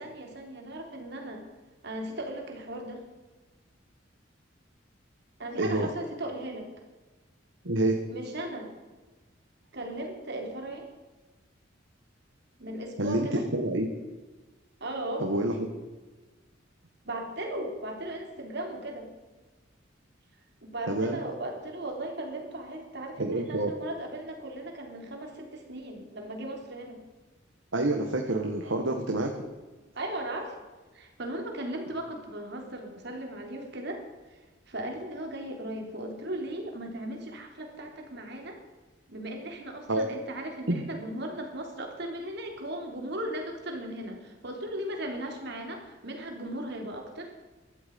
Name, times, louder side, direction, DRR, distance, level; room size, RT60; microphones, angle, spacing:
voice 1, 0.0-1.4 1.8-3.0 5.4-6.7 8.1-8.7 9.7-10.9 12.6-13.4 14.8-15.3 17.1-19.1 20.6-27.0 30.0-30.6 30.9-34.0 34.3-34.4 34.7-38.6 39.1-47.3, right 1 dB, 60° right, 3 dB, 3.6 m, -37 dB
voice 2, 5.6-5.9 7.7-8.0 13.0-13.9 15.2-15.5 20.9-21.2 23.2-23.7 27.7-29.3 39.9-40.1 40.7-40.8, right 1 dB, 85° right, 3 dB, 1.8 m, -27 dB
16.5 x 13.0 x 5.5 m, 1.2 s
head